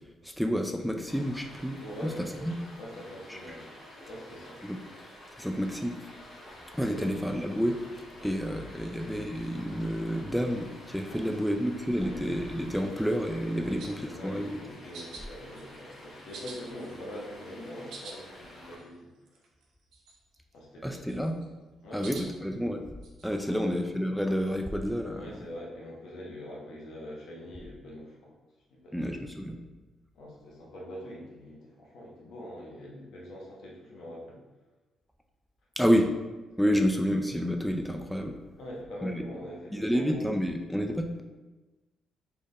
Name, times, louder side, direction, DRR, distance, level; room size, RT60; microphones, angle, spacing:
voice 1, 0.2-2.6 3.3-3.4 4.6-4.8 5.4-6.1 6.7-7.8 8.2-14.6 20.8-21.4 21.9-22.8 23.2-25.5 28.9-29.6 35.8-36.1 36.6-38.4 39.0-39.2 39.7-41.2, equal, ahead, 4 dB, 0.3 m, -29 dB
Stream, 1.1-18.8, left 1 dB, 50° left, 1.2 m, -49 dB
voice 2, 1.8-3.7 4.0-4.6 6.9-7.0 8.7-8.9 11.1-11.4 12.0-12.2 13.6-19.1 20.5-21.2 21.8-22.0 23.5-23.7 25.2-28.3 28.8-29.1 30.1-34.4 36.7-36.9 38.6-40.3, equal, 75° left, -4 dB, 1.0 m, -43 dB
sound 1, 13.8-14.1 14.9-15.3 15.6-16.0 16.3-17.3 17.7-18.2 18.5-18.6 18.8-18.9 19.3-19.6 19.9-20.4 20.8-21.4 22.0-22.3 23.0-23.2, right 3 dB, 80° right, 0.7 m, -46 dB
3.8 x 3.4 x 2.6 m, 1.2 s
cardioid pair, 90°, 0 cm